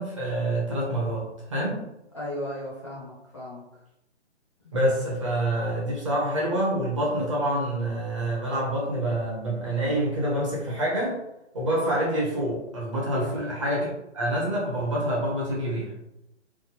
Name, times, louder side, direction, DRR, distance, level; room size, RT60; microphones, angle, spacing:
voice 1, 0.0-1.8 4.7-11.2 11.5-13.9 14.1-15.9, right 1 dB, 25° right, -4 dB, 0.7 m, -27 dB
voice 2, 2.1-3.6 13.2-13.5, equal, 25° left, -6 dB, 0.5 m, -35 dB
3.2 x 2.2 x 3.2 m, 0.84 s
figure-of-eight pair, 140°, 36 cm